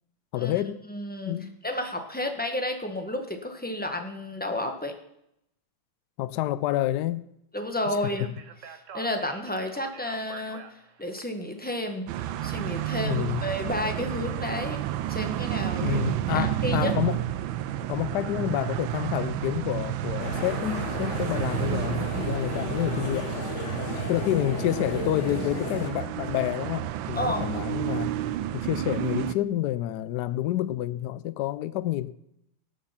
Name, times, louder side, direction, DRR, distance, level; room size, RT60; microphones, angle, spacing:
voice 1, 0.3-0.8 1.3-1.6 6.2-7.3 13.0-13.4 15.7-17.3 17.9-23.3 24.1-28.1 28.5-32.1, left 14 dB, 75° left, 1.0 m, -29 dB
voice 2, 0.9-1.3 1.6-4.9 7.5-8.3 8.9-12.1 12.4-14.8 15.1-16.0 16.3-16.9 27.1-27.5, left 1 dB, 5° left, 0.7 m, -31 dB
Speech, 8.0-12.6, right 7 dB, 55° right, 0.9 m, -47 dB
sound 1, 12.1-29.3, right 12 dB, 75° right, 1.3 m, -31 dB
sound 2, 20.2-25.9, left 3 dB, 40° left, 1.5 m, -34 dB
18.5 x 6.7 x 5.8 m
omnidirectional pair, 2.4 m